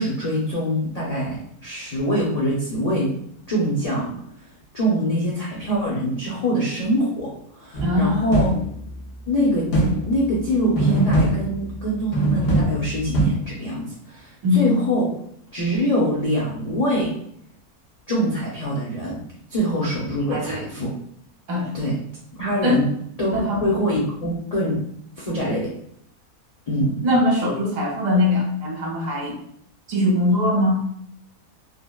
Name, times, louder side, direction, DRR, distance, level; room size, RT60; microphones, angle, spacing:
voice 1, 0.0-3.1 3.5-4.1 4.7-7.3 7.5-8.5 9.3-9.7 10.0-15.1 15.5-17.1 18.1-19.2 19.5-20.9 21.7-22.0 22.4-22.9 23.2-23.3 23.6-24.7 25.2-25.7 26.7-26.9, equal, 75° left, -6 dB, 0.3 m, -24 dB
sound 1, 7.7-9.0 9.7-10.4 10.8-11.9 12.1-13.3, right 1 dB, 60° left, 1.0 m, -22 dB
voice 2, 7.8-8.3 14.4-14.6 20.3-20.6 21.5-21.7 22.6-22.9 23.3-23.6 27.0-29.4 29.9-30.8, left 1 dB, 65° right, -3 dB, 1.2 m, -21 dB
3.2 x 2.1 x 2.3 m, 0.68 s
omnidirectional pair, 1.6 m